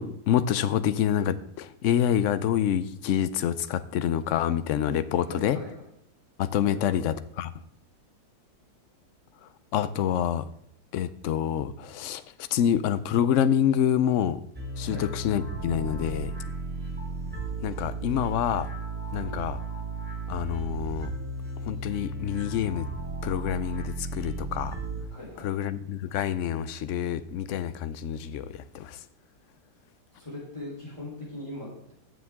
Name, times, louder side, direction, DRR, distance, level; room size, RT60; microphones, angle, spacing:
voice 1, 0.0-5.6 6.4-7.5 9.4-10.5 10.9-14.4 14.8-16.3 17.6-18.7 19.1-19.6 20.3-21.1 21.6-22.9 23.2-24.8 25.4-29.0, left 9 dB, 70° left, 14 dB, 0.7 m, -27 dB
voice 2, 5.2-5.7 6.6-7.0 14.8-15.0 19.2-19.3 25.1-25.5 30.1-31.9, left 1 dB, 15° left, -5 dB, 3.8 m, -40 dB
sound 1, 14.5-25.0, right 3 dB, 5° right, 1.8 m, -35 dB
14.0 x 7.3 x 3.6 m, 0.73 s
omnidirectional pair, 1.8 m